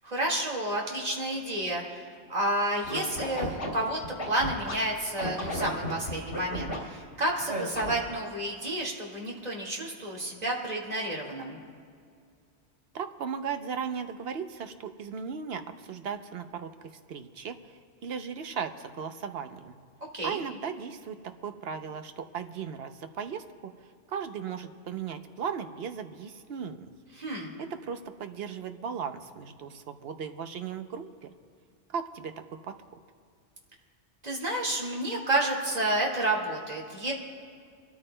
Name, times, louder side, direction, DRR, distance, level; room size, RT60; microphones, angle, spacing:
voice 1, 0.0-4.0 4.3-11.6 20.1-20.4 27.2-27.5 34.2-37.1, right 1 dB, 35° right, -2 dB, 2.0 m, -30 dB
Scratching (performance technique), 2.8-4.7 5.2-6.8 7.5-8.1, equal, 75° left, 2.9 m, -33 dB
voice 2, 12.9-19.7 20.2-26.9 27.6-31.3 31.9-32.7, right 6 dB, 65° right, 8 dB, 0.9 m, -37 dB
26.0 x 13.5 x 2.2 m, 2.2 s
omnidirectional pair, 1.2 m